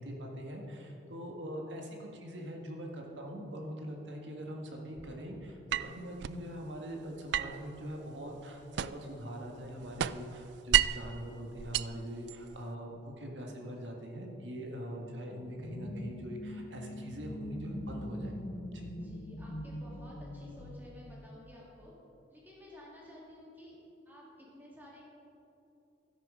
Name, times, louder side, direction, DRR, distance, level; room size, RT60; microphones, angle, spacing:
voice 1, 0.0-18.4 18.7-18.9, equal, 85° right, 1 dB, 1.7 m, -42 dB
sound 1, 4.9-5.4, equal, 15° left, 1.5 m, -55 dB
sound 2, 5.7-6.4 7.3-9.2 9.5-11.1 11.6-12.7, right 11 dB, 70° right, 0.3 m, -32 dB
sound 3, 15.4-21.8, left 1 dB, 80° left, 1.0 m, -43 dB
voice 2, 18.9-21.9 22.3-23.8 24.0-25.0, left 1 dB, 10° right, -5 dB, 3.1 m, -53 dB
12.5 x 10.5 x 5.0 m, 2.9 s
head